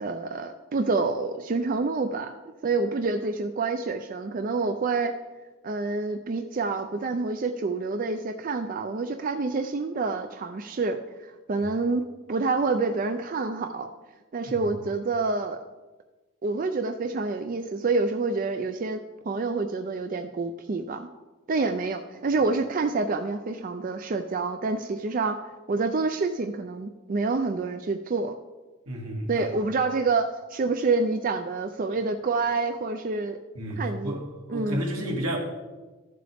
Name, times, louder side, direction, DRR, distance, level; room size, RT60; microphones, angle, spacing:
voice 1, 0.0-2.3 2.6-5.1 5.6-12.0 12.3-13.9 14.3-15.6 16.4-19.0 19.2-21.1 21.5-25.4 25.7-28.3 29.3-33.4 33.8-34.2 34.5-34.8, right 3 dB, 40° right, 0.4 m, -27 dB
voice 2, 28.9-29.5 33.6-35.4, equal, 85° right, 2.0 m, -32 dB
13.0 x 7.6 x 3.5 m
head